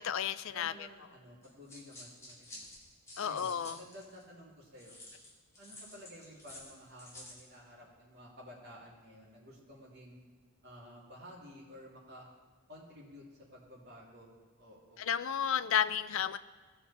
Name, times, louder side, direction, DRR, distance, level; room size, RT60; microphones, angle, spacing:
voice 1, 0.0-0.7 3.2-3.8 15.0-16.4, left 8 dB, 60° left, 13 dB, 0.4 m, -32 dB
voice 2, 0.5-2.7 3.2-5.0 5.6-10.2 10.6-12.3 12.7-13.2 13.5-14.3 14.6-15.1, equal, 45° right, -4 dB, 2.8 m, -52 dB
sound 1, 1.4-4.2 4.8-7.5, left 1 dB, 15° left, 2.2 m, -51 dB
17.0 x 5.9 x 4.2 m, 1.5 s
head